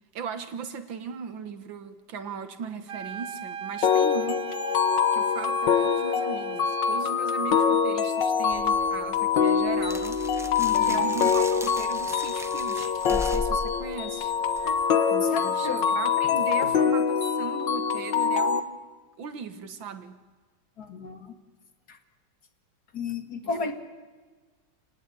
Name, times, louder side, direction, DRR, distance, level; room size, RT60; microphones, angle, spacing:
voice 1, 0.1-4.5 5.1-10.5 10.8-14.3 15.1-18.7 19.2-20.2 23.4-23.7, right 6 dB, 90° right, 9 dB, 2.2 m, -38 dB
sound 1, 2.9-7.1, right 7 dB, 65° right, 1.9 m, -38 dB
sound 2, 3.8-18.6, left 6 dB, 75° left, 1.9 m, -24 dB
sound 3, 8.5-14.8, left 1 dB, 5° right, 0.5 m, -38 dB
voice 2, 10.6-11.2 14.6-14.8 15.2-15.9 16.6-16.7 20.8-21.3 21.9-22.0 22.9-23.7, left 5 dB, 55° left, 6 dB, 2.4 m, -33 dB
28.5 x 19.5 x 8.5 m, 1.4 s
omnidirectional pair, 2.0 m